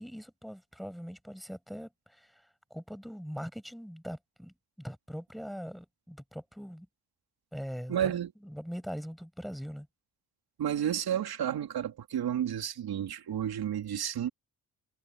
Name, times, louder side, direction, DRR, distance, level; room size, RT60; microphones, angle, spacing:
voice 1, 0.0-6.9 7.5-9.9, equal, ahead, 7.9 m, -42 dB
voice 2, 7.9-8.3 10.6-14.3, right 10 dB, 75° right, 3.0 m, -31 dB
cardioid pair, 70°, 38 cm